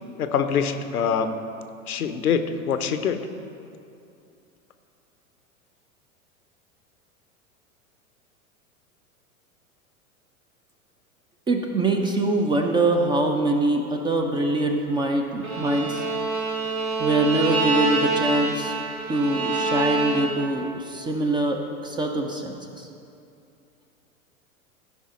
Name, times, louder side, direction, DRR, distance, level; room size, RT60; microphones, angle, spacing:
voice 1, 0.2-1.4 1.9-3.2, left 7 dB, 80° left, 9 dB, 0.7 m, -24 dB
voice 2, 11.5-16.1 17.0-18.7 19.1-22.9, right 2 dB, 10° right, 3 dB, 0.4 m, -24 dB
Bowed string instrument, 15.4-20.6, right 3 dB, 85° right, 2.0 m, -26 dB
14.0 x 5.4 x 4.2 m, 2.6 s
figure-of-eight pair, 90°, 43 cm